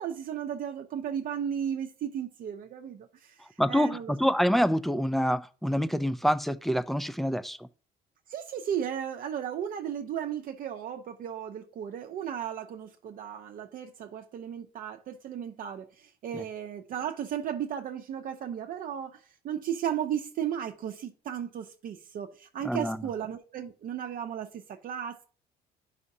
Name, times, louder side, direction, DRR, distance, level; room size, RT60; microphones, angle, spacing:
voice 1, 0.0-4.1 8.3-25.2, right 9 dB, 55° right, 0.6 m, -35 dB
voice 2, 3.6-7.6 16.3-16.4 22.6-23.0, equal, ahead, 0.4 m, -26 dB
11.0 x 4.9 x 2.7 m
cardioid pair, 110°, 17 cm